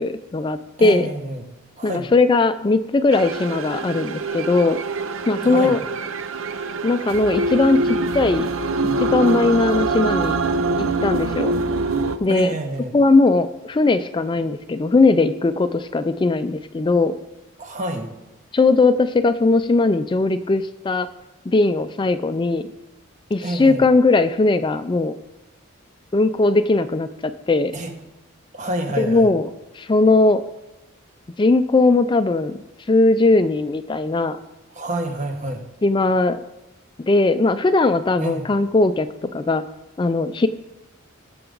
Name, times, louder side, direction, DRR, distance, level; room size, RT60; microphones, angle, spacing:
voice 1, 0.0-1.1 1.8-4.8 5.3-5.8 6.8-8.5 9.0-10.4 10.8-11.6 12.2-12.5 12.9-17.1 18.5-21.1 21.5-22.7 23.3-25.2 26.1-27.7 29.0-29.5 29.7-30.4 31.4-32.6 32.9-34.4 35.8-36.4 37.1-39.1 39.3-39.6 40.0-40.5, left 3 dB, 25° left, 11 dB, 0.4 m, -19 dB
voice 2, 0.8-1.5 1.8-2.1 5.4-5.8 12.3-13.0 17.6-18.1 23.4-23.9 27.7-27.9 28.5-29.3 34.8-35.6 38.2-38.4, right 1 dB, 35° right, 4 dB, 1.6 m, -28 dB
sound 1, 3.1-12.2, right 3 dB, 75° right, 0.7 m, -24 dB
19.5 x 6.8 x 3.9 m, 1.1 s
head